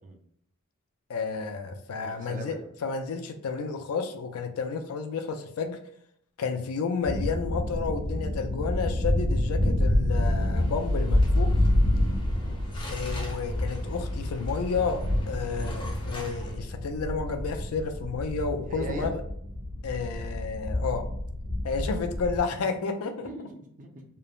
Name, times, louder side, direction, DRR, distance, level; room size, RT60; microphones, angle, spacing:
voice 1, 1.1-5.8 6.4-11.5 12.9-19.2 19.8-21.1 21.6-23.3, left 5 dB, 75° left, 6 dB, 0.4 m, -31 dB
voice 2, 2.0-2.6 12.2-12.5 18.7-19.1 21.8-22.0 23.2-24.1, right 3 dB, 35° right, 3 dB, 0.5 m, -40 dB
sound 1, 7.0-22.4, left 1 dB, 75° right, 1.0 m, -28 dB
sound 2, 10.5-16.6, equal, 20° left, 0.6 m, -43 dB
3.1 x 2.0 x 2.3 m, 0.69 s
head